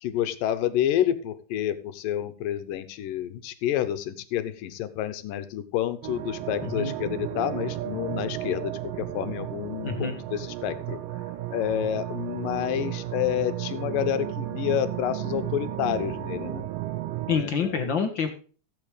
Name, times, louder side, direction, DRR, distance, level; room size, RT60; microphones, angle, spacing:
voice 1, 0.0-8.7 9.1-11.0 11.5-16.7 17.3-17.5, left 11 dB, 85° left, 11 dB, 2.7 m, -29 dB
sound 1, 6.0-17.4, right 14 dB, 90° right, 2.5 m, -34 dB
voice 2, 6.6-6.9 9.8-10.2 17.3-18.3, left 6 dB, 45° left, 5 dB, 1.7 m, -27 dB
15.5 x 8.1 x 3.3 m, 0.38 s
omnidirectional pair, 3.8 m